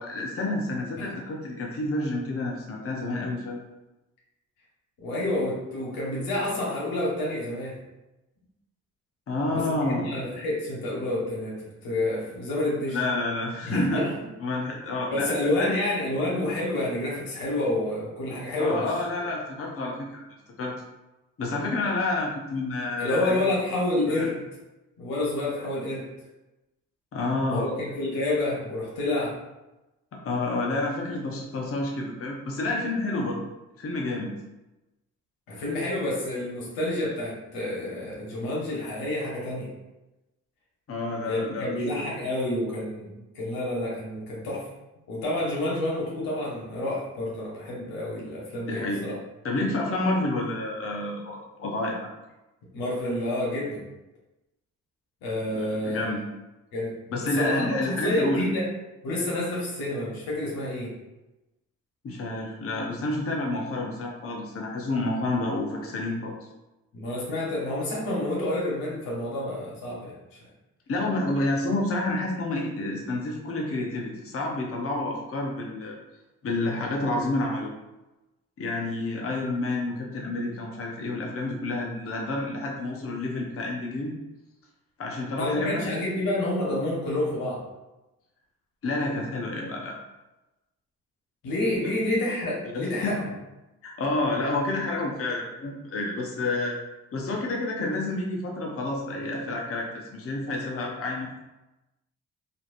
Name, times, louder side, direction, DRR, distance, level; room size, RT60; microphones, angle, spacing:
voice 1, 0.0-3.7 9.3-10.1 12.9-14.0 14.4-15.8 18.6-20.2 20.6-20.7 21.4-23.4 24.1-24.3 27.1-27.7 30.1-33.4 33.8-34.3 40.9-42.1 48.7-49.0 49.4-52.1 55.5-56.2 57.1-58.4 62.0-66.3 70.9-76.0 76.4-77.7 78.6-84.1 85.0-85.8 88.8-90.0 92.7-93.2 93.8-96.8 97.1-101.4, left 2 dB, 40° left, -1 dB, 0.7 m, -29 dB
voice 2, 5.0-7.7 9.5-13.0 13.6-14.1 15.1-18.9 23.0-24.4 25.0-26.1 27.5-29.3 35.5-39.7 41.2-43.1 43.3-44.6 45.1-49.1 52.7-53.8 55.2-56.0 56.7-58.7 59.0-60.9 66.9-70.1 85.4-87.6 91.4-93.3, left 1 dB, 85° left, -5 dB, 1.0 m, -29 dB
3.1 x 2.5 x 2.5 m, 1.0 s
supercardioid pair, 45°, 34 cm